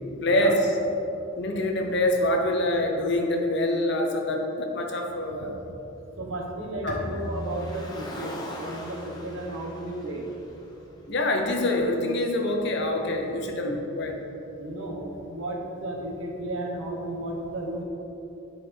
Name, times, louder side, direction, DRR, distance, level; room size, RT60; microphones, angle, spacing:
voice 1, 0.2-0.6 1.4-5.5 6.8-7.0 11.1-14.2, left 1 dB, 60° left, 2 dB, 1.0 m, -25 dB
voice 2, 5.3-5.7 6.2-10.3 14.6-17.8, right 1 dB, 85° right, -1 dB, 1.4 m, -34 dB
Bowed string instrument, 6.9-10.3, right 1 dB, 40° right, 1.2 m, -39 dB
Car, 7.1-11.5, left 1 dB, 20° left, 1.1 m, -42 dB
9.7 x 4.9 x 4.6 m, 2.9 s
head